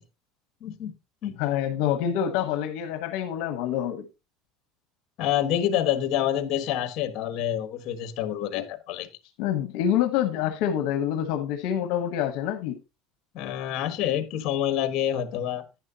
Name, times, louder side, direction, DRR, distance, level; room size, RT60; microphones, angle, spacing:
voice 1, 0.6-0.9 1.2-1.4 5.2-9.1 13.3-15.6, left 11 dB, 40° left, 1.4 m, -27 dB
voice 2, 1.4-4.0 8.5-8.6 9.4-12.8, left 10 dB, 60° left, 1.1 m, -26 dB
11.0 x 9.5 x 2.8 m
cardioid pair, 165°, 0 cm